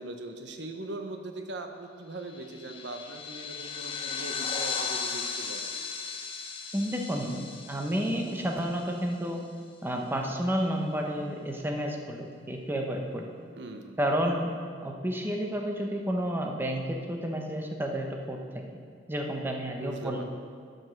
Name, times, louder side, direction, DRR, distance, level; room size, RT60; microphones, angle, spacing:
voice 1, 0.0-5.7 13.6-14.0 19.8-20.2, right 2 dB, 65° right, 5 dB, 0.8 m, -40 dB
sound 1, 2.3-9.1, left 5 dB, 30° left, 0.7 m, -36 dB
voice 2, 6.7-9.4 9.8-13.3 14.0-14.5 14.8-18.6 19.1-20.2, equal, 10° right, 1 dB, 0.8 m, -31 dB
12.0 x 5.2 x 6.3 m, 2.1 s
head